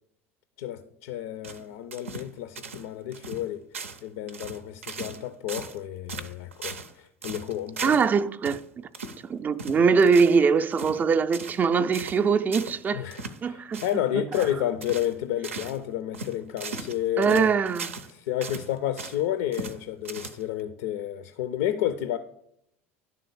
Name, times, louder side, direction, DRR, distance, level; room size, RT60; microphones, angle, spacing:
voice 1, 0.6-3.7 4.0-7.9 12.9-17.6 18.1-22.2, left 11 dB, 60° left, 0.5 m, -31 dB
sound 1, 1.4-2.3 2.6-2.9 3.1-3.4 3.7-4.0 4.3-5.2 5.5-5.8 6.1-6.9 7.2-8.1 8.4-8.6 8.9-9.2 9.6-10.4 10.7-11.0 11.3-11.6 11.9-12.2 12.5-12.8 13.1-13.4 13.7-14.0 14.3-14.5 14.8-15.1 15.4-15.8 16.1-18.1 18.4-19.2 19.5-19.8 20.0-20.6, right 4 dB, 75° right, 0.6 m, -38 dB
voice 2, 7.8-8.9 9.2-13.1 13.4-13.8 17.2-17.9, right 5 dB, 25° right, 0.4 m, -22 dB
11.0 x 3.7 x 6.7 m
figure-of-eight pair, 70°, 7 cm